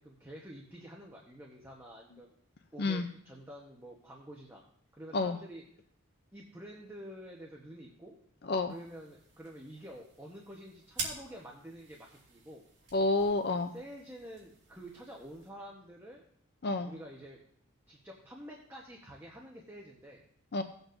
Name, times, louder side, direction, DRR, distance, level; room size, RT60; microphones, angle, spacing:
voice 1, 0.0-2.3 2.7-4.6 4.9-5.6 6.3-8.1 8.6-12.7 13.7-16.2 16.8-17.4 17.9-20.2, equal, 10° right, -1 dB, 1.0 m, -48 dB
light up cigarette, 8.7-15.5, right 4 dB, 55° right, 2.4 m, -47 dB
voice 2, 12.9-13.7 16.6-16.9 20.5-20.6, left 2 dB, 50° left, 8 dB, 0.5 m, -29 dB
17.5 x 8.0 x 2.6 m, 0.64 s
head